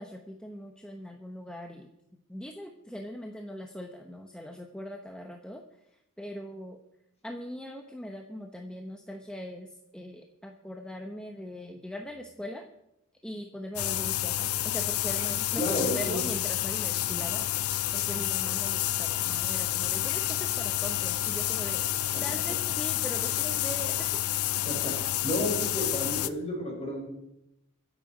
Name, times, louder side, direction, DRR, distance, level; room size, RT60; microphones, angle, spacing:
voice 1, 0.0-1.9 2.3-5.6 6.2-6.8 7.2-12.7 13.2-17.5 17.9-21.9 22.2-24.2, equal, 5° left, 3 dB, 0.9 m, -41 dB
sound 1, 13.8-26.3, left 13 dB, 90° left, 0.7 m, -29 dB
voice 2, 15.5-16.2 22.1-22.4 24.6-27.1, left 1 dB, 30° left, 0 dB, 4.7 m, -32 dB
23.5 x 8.2 x 5.0 m, 0.83 s
head